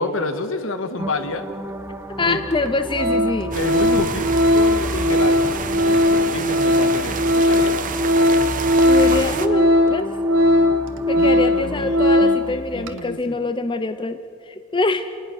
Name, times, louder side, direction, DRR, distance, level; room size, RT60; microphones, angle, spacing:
voice 1, 0.0-1.5 2.2-2.4 3.5-7.8 11.2-13.4, left 2 dB, 70° left, 8 dB, 1.7 m, -29 dB
sound 1, 1.0-12.9, right 1 dB, 10° right, 0.8 m, -34 dB
Organ, 1.9-2.0 2.5-2.7 2.9-12.5 12.8-13.0, left 1 dB, 65° right, 1.4 m, -18 dB
voice 2, 2.2-3.6 8.8-10.1 11.1-14.2 14.5-15.1, left 2 dB, 25° left, 10 dB, 0.6 m, -24 dB
sound 2, 3.5-9.5, right 5 dB, 40° right, 1.1 m, -29 dB
29.0 x 20.0 x 6.4 m, 2.6 s
head